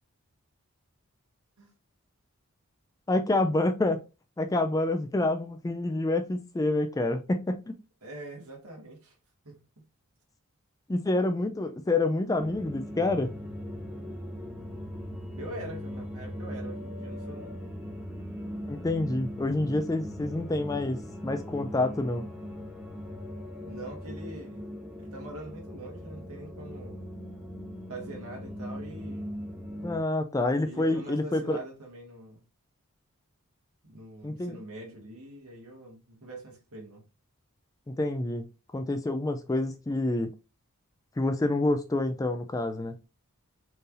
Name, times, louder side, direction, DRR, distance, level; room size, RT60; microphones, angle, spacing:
voice 1, 3.1-4.0 4.4-7.7 10.9-13.3 18.7-22.2 29.8-31.6 34.2-34.6 37.9-40.3 41.2-43.0, left 2 dB, 15° left, 0.3 m, -28 dB
voice 2, 8.0-9.2 9.4-9.6 15.4-17.5 23.6-24.7 25.0-27.0 27.9-29.4 30.7-32.4 33.9-37.0, right 2 dB, 75° right, 1.8 m, -43 dB
sound 1, 12.3-30.0, equal, 5° right, 1.1 m, -39 dB
4.5 x 3.3 x 2.5 m
head